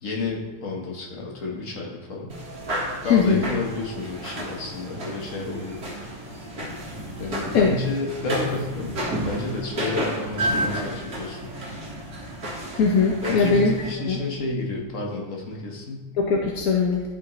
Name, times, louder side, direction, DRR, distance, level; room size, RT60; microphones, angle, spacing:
voice 1, 0.0-2.3 3.0-5.9 7.2-9.0 9.2-11.5 13.2-16.1, left 3 dB, 40° left, -2 dB, 1.5 m, -30 dB
sound 1, 2.3-13.9, equal, 50° right, 2.1 m, -31 dB
voice 2, 3.1-3.4 7.5-7.7 12.8-13.7 14.1-14.2 16.2-17.0, left 4 dB, 60° left, -1 dB, 1.0 m, -20 dB
12.5 x 5.2 x 3.2 m, 1.2 s
omnidirectional pair, 2.3 m